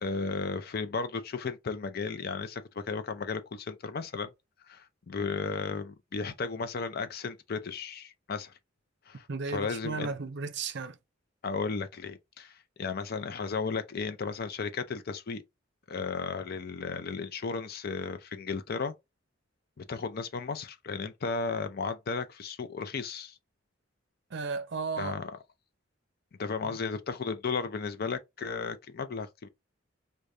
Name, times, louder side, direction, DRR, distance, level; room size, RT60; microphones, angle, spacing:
voice 1, 0.0-4.3 4.7-8.5 9.1-10.1 11.4-15.4 15.9-18.9 19.8-23.4 25.0-25.2 26.4-29.5, left 4 dB, 50° left, 0.5 m, -34 dB
voice 2, 9.3-11.0 24.3-25.2 26.6-26.8, right 4 dB, 60° right, 0.5 m, -34 dB
4.8 x 2.2 x 2.6 m
head